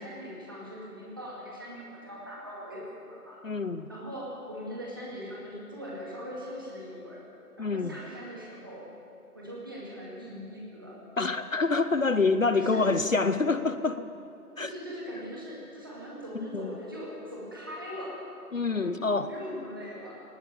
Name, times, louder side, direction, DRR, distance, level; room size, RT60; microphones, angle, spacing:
voice 1, 0.0-3.4 3.9-7.2 7.6-8.9 9.3-11.0 12.5-12.8 14.6-18.2 18.8-19.0 19.3-20.2, equal, 15° right, -5 dB, 2.1 m, -41 dB
voice 2, 3.4-3.9 7.6-7.9 11.2-14.1 14.6-14.7 16.5-16.7 18.5-19.3, left 3 dB, 55° left, 12 dB, 0.8 m, -26 dB
18.5 x 17.0 x 8.5 m, 2.7 s
figure-of-eight pair, 175°, 46 cm